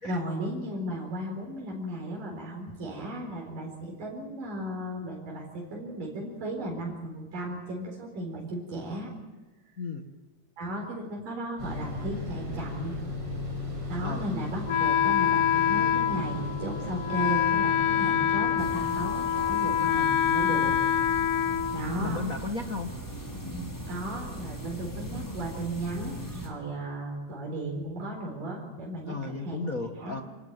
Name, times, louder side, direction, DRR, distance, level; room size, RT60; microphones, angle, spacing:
voice 1, 0.0-9.1 10.6-13.0 13.9-21.1 21.7-22.2 23.9-29.6 30.0-30.2, right 1 dB, 80° right, -1 dB, 6.0 m, -35 dB
sound 1, 11.6-18.7, left 3 dB, 40° right, 7.1 m, -36 dB
Wind instrument woodwind instrument, 14.7-22.4, left 9 dB, 65° left, 1.5 m, -26 dB
sound 2, 18.6-26.5, equal, 5° left, 4.9 m, -39 dB
voice 2, 21.9-22.9 29.1-30.2, left 4 dB, 45° left, 5 dB, 1.1 m, -34 dB
28.0 x 19.5 x 9.3 m, 1.2 s
omnidirectional pair, 3.8 m